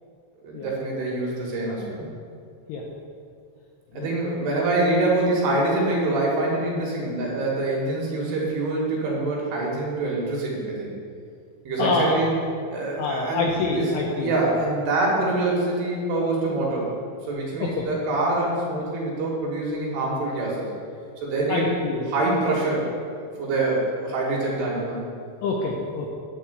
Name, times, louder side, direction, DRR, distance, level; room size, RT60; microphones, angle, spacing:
voice 1, 0.4-2.1 3.9-10.9 11.6-12.3 12.7-13.9 14.2-16.9 17.3-20.7 21.2-21.7 22.1-22.9 23.2-25.0, right 2 dB, 65° right, -4 dB, 3.4 m, -25 dB
voice 2, 11.8-12.3 13.0-14.3 17.6-17.9 21.5-22.0 25.4-26.1, left 3 dB, 80° left, -1 dB, 2.5 m, -26 dB
10.0 x 4.8 x 8.0 m, 2.3 s
omnidirectional pair, 5.7 m